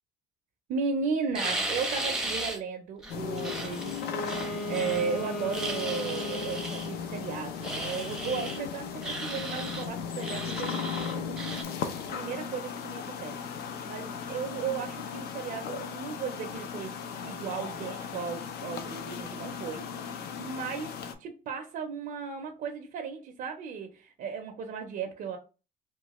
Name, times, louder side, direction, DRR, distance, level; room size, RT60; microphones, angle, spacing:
voice 1, 0.7-11.6 12.1-13.4 13.9-16.9 17.2-20.9 21.2-25.4, right 6 dB, 60° right, 0.5 m, -35 dB
sound 1, 1.3-2.6 3.0-5.1 5.5-6.9 7.6-8.6 9.0-9.9 10.2-11.6, right 2 dB, 5° right, 0.6 m, -35 dB
sound 2, 3.1-21.1, left 7 dB, 70° left, 0.5 m, -37 dB
Wind instrument woodwind instrument, 4.0-6.9, left 1 dB, 50° left, 1.1 m, -36 dB
3.0 x 2.2 x 2.9 m
cardioid pair, 110°, 17 cm